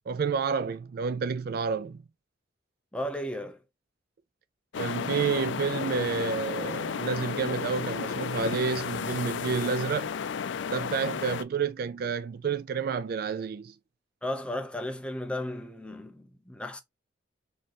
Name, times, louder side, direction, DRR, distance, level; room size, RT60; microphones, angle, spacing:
voice 1, 0.1-2.0 4.8-10.1 10.7-13.7, right 5 dB, 50° right, 0.3 m, -30 dB
voice 2, 2.9-3.6 14.2-16.8, left 1 dB, 5° left, 0.8 m, -34 dB
sound 1, 4.7-11.4, left 6 dB, 70° left, 0.4 m, -33 dB
4.4 x 3.8 x 3.0 m
head